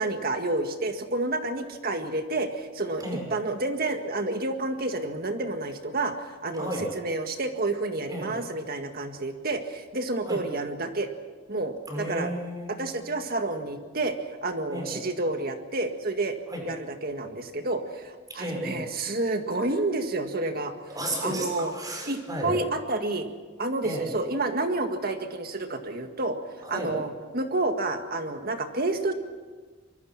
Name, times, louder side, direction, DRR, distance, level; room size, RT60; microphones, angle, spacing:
voice 1, 0.0-3.0 3.3-11.1 11.5-12.3 12.7-14.2 14.4-16.4 16.6-20.7 21.2-21.7 22.1-23.3 23.6-29.1, right 2 dB, 50° right, 6 dB, 1.9 m, -29 dB
voice 2, 6.5-6.9 8.1-8.3 10.2-10.4 11.9-13.0 14.7-14.9 16.5-16.6 18.3-18.9 20.9-22.6 23.8-24.1 26.6-26.9, right 1 dB, 20° right, 1 dB, 6.1 m, -33 dB
24.5 x 22.0 x 6.0 m, 1.4 s
head